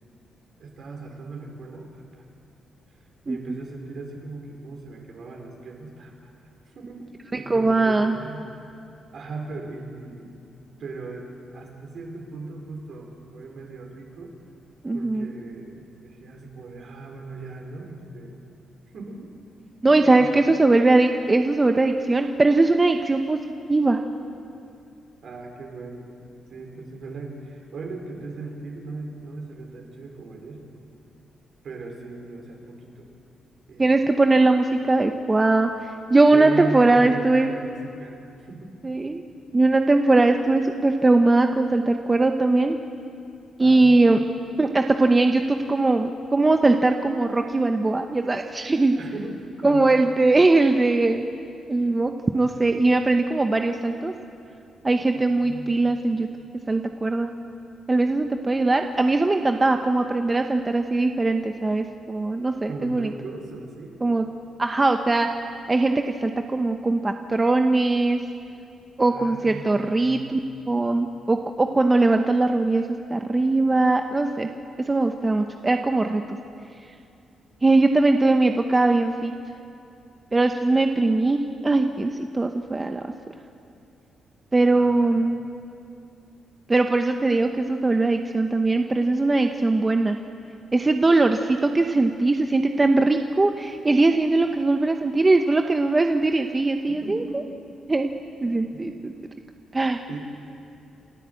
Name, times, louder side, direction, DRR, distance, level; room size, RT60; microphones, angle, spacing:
voice 1, 0.6-2.0 2.9-3.0 3.2-6.3 6.7-8.4 9.1-10.4 10.8-14.3 14.9-18.4 18.9-19.3 19.9-20.4 25.2-26.1 26.5-30.6 31.6-33.1 33.7-34.1 36.3-38.7 43.6-44.0 49.0-49.4 49.6-49.9 55.1-55.8 62.7-64.0 69.1-70.2 84.7-85.2 97.0-97.4 98.4-98.8 100.1-100.2, right 3 dB, 60° right, 1 dB, 4.8 m, -38 dB
voice 2, 7.5-8.2 14.8-15.3 19.8-23.4 23.7-24.0 33.8-37.5 38.8-39.2 39.5-42.8 43.6-44.2 44.6-48.9 49.6-51.3 51.7-54.1 54.8-56.3 56.7-57.3 57.9-63.1 64.0-64.3 64.6-65.3 65.7-65.9 66.2-68.2 69.0-70.4 70.7-72.8 73.1-74.5 74.9-76.4 77.6-79.3 80.3-83.0 84.5-85.4 86.7-90.2 90.7-97.2 97.9-98.1 98.4-99.1 99.7-100.0, right 2 dB, 20° right, 5 dB, 0.9 m, -20 dB
28.0 x 13.0 x 8.4 m, 2.5 s
cardioid pair, 100°, 0 cm